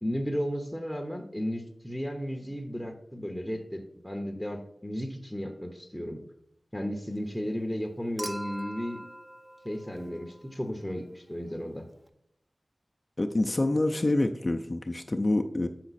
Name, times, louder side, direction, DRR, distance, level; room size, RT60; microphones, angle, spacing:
voice 1, 0.0-6.2 6.7-9.0 9.6-11.9, equal, ahead, 3 dB, 0.8 m, -34 dB
Human group actions / Chink clink / Liquid, 8.2-10.6 12.1-12.2, equal, 30° right, 0.8 m, -41 dB
voice 2, 13.2-15.7, left 2 dB, 35° left, 4 dB, 0.4 m, -26 dB
7.3 x 5.8 x 4.1 m, 0.77 s
wide cardioid pair, 65°, 0 cm